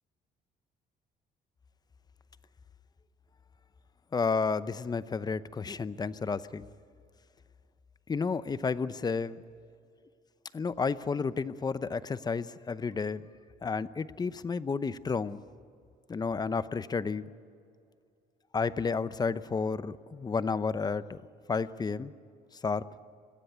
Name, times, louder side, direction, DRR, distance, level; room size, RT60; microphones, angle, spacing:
voice 1, 4.1-6.7 8.1-9.4 10.5-13.3 13.6-15.4 16.1-17.2 18.5-21.2 21.5-22.1 22.6-22.8, left 5 dB, 25° left, 15 dB, 0.7 m, -31 dB
24.5 x 16.0 x 9.4 m, 2.4 s
cardioid pair, 110°, 17 cm